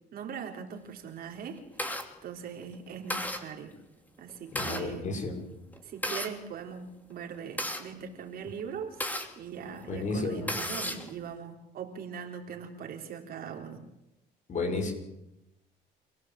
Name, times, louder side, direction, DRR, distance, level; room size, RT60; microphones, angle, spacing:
voice 1, 0.1-1.9 2.2-3.7 4.2-5.1 5.8-9.0 9.4-13.8, right 7 dB, 60° right, 3 dB, 4.0 m, -41 dB
sound 1, 1.1-2.0 2.6-2.8 3.1-3.4 4.2-4.9 5.7-6.3 7.1-9.3 9.8-9.9 10.2-11.1, left 1 dB, 10° left, 3.1 m, -34 dB
voice 2, 4.5-5.4 9.9-10.5 14.5-14.9, left 3 dB, 45° left, 4 dB, 6.8 m, -32 dB
27.5 x 17.5 x 7.8 m, 0.89 s
cardioid pair, 110°, 17 cm